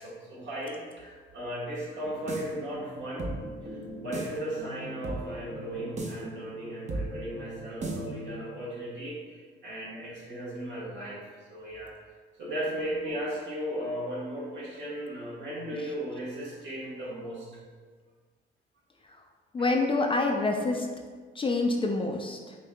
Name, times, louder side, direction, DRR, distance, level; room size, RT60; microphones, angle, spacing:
voice 1, 0.0-11.2 11.5-17.6 19.6-19.7, right 1 dB, 65° right, -5 dB, 1.3 m, -36 dB
sound 1, 1.9-8.5, right 2 dB, 35° right, 0.6 m, -37 dB
voice 2, 19.5-20.9 21.4-22.6, left 2 dB, 25° left, 2 dB, 0.4 m, -27 dB
5.1 x 2.7 x 2.2 m, 1.5 s
cardioid pair, 90°, 20 cm